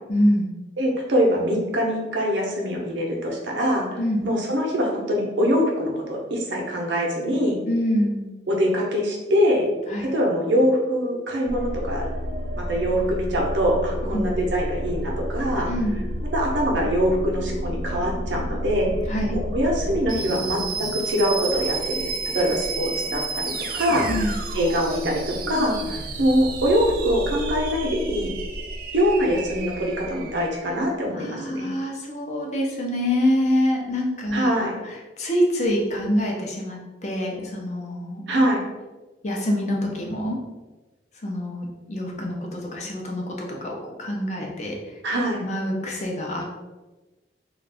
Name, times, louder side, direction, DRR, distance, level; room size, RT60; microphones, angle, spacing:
voice 1, 0.1-0.5 4.0-4.2 7.7-8.3 9.9-10.1 14.1-14.3 15.7-16.0 19.1-19.4 24.1-24.3 31.1-38.2 39.2-40.4 41.2-44.7 45.4-46.4, equal, 40° left, 0 dB, 0.5 m, -25 dB
voice 2, 0.8-4.0 4.2-7.6 8.5-9.7 10.0-12.1 12.6-15.7 16.3-18.9 19.3-24.1 24.5-28.3 28.9-31.7 34.3-34.7 38.3-38.6 45.0-45.4, equal, 85° right, -1 dB, 0.7 m, -23 dB
sound 1, 11.5-30.8, right 1 dB, 50° right, 0.3 m, -30 dB
2.5 x 2.3 x 3.3 m, 1.1 s
head